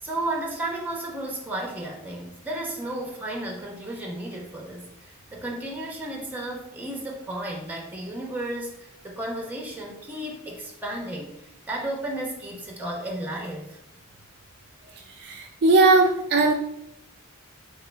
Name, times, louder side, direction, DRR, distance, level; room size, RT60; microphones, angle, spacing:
voice 1, 0.0-11.3 11.7-13.8, right 1 dB, 10° right, 0 dB, 0.9 m, -33 dB
voice 2, 15.2-16.5, right 3 dB, 50° right, 3 dB, 0.5 m, -19 dB
3.7 x 3.1 x 4.6 m, 0.81 s
head